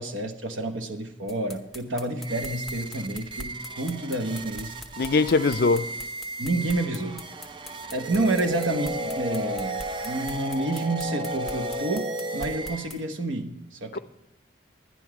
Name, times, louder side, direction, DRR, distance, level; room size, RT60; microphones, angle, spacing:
voice 1, 0.0-4.7 6.4-7.2 7.9-14.0, right 2 dB, 90° right, 1.1 m, -29 dB
sound 1, 1.3-13.0, left 2 dB, ahead, 0.8 m, -42 dB
sound 2, 2.2-13.2, right 3 dB, 25° right, 0.4 m, -39 dB
voice 2, 5.0-5.9 13.9-14.0, left 3 dB, 50° left, 0.4 m, -21 dB
sound 3, 7.9-12.9, equal, 40° right, 1.1 m, -32 dB
11.0 x 11.0 x 4.8 m
head